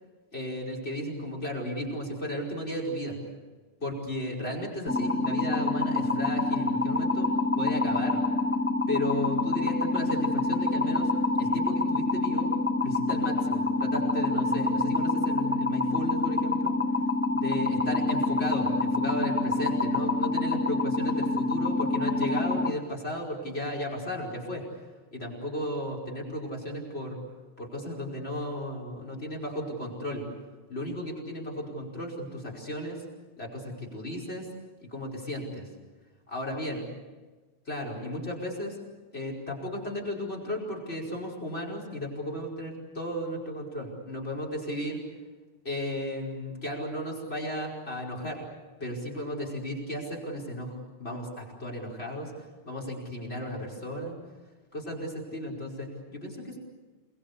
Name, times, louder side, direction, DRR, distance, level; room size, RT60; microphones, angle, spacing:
voice 1, 0.3-3.2 3.8-7.3 7.5-8.2 8.9-11.1 11.4-12.5 12.8-16.7 17.3-24.6 25.1-27.2 27.6-30.2 30.7-33.0 33.4-34.5 34.8-35.7 36.3-36.8 37.7-38.8 39.1-45.0 45.6-48.4 48.8-54.1 54.7-56.6, equal, 70° left, -1 dB, 5.6 m, -35 dB
sound 1, 4.9-22.7, left 3 dB, 15° left, 0.8 m, -27 dB
29.0 x 21.0 x 8.3 m, 1.3 s
omnidirectional pair, 1.1 m